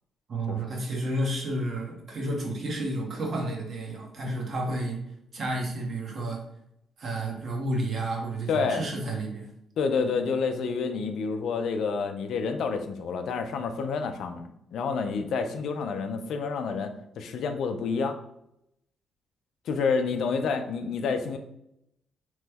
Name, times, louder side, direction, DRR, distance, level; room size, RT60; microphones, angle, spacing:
voice 1, 0.3-5.0 5.3-6.4 7.0-9.5, right 1 dB, 50° right, 0 dB, 0.9 m, -31 dB
voice 2, 8.5-8.8 9.8-18.2 19.7-21.4, left 5 dB, 70° left, 7 dB, 0.4 m, -29 dB
3.0 x 2.2 x 3.3 m, 0.79 s
cardioid pair, 90°, 0 cm